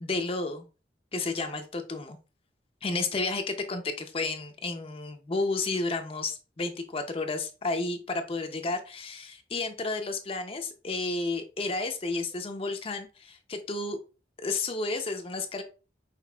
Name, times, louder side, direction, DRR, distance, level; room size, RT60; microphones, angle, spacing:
voice 1, 0.0-0.7 1.1-2.2 2.8-14.0 14.4-15.6, left 3 dB, 35° left, 5 dB, 0.6 m, -32 dB
5.9 x 3.4 x 2.3 m, 0.33 s
head